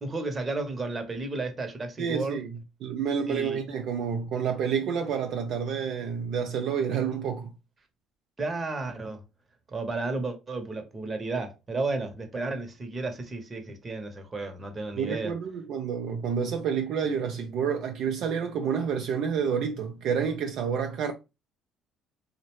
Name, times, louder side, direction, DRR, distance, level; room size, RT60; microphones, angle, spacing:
voice 1, 0.0-2.4 3.3-3.6 8.4-9.2 9.7-15.3, right 3 dB, 30° right, 0.8 m, -33 dB
voice 2, 2.0-2.5 2.8-7.5 15.0-21.1, right 7 dB, 65° right, 0.4 m, -29 dB
2.6 x 2.1 x 3.0 m
supercardioid pair, 70°, 0 cm